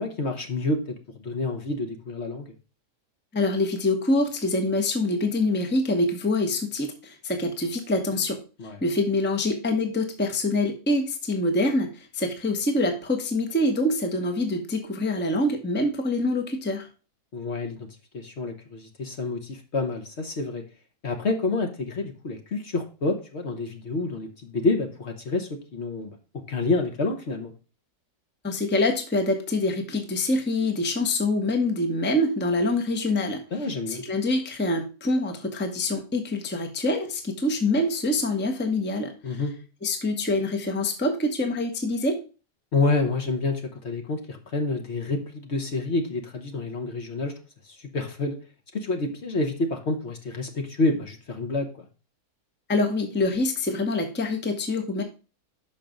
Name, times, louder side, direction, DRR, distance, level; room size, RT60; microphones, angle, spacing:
voice 1, 0.0-2.5 8.6-8.8 17.3-17.9 18.1-20.6 21.0-26.1 26.5-27.5 33.5-34.0 39.2-39.5 42.7-47.3 47.6-48.4 48.7-51.7, left 3 dB, 50° left, 4 dB, 1.2 m, -28 dB
voice 2, 3.3-8.4 8.8-16.9 28.4-33.4 33.9-39.4 39.8-42.2 52.7-55.0, left 2 dB, 10° left, 5 dB, 0.8 m, -25 dB
5.9 x 5.5 x 5.1 m, 0.34 s
omnidirectional pair, 1.6 m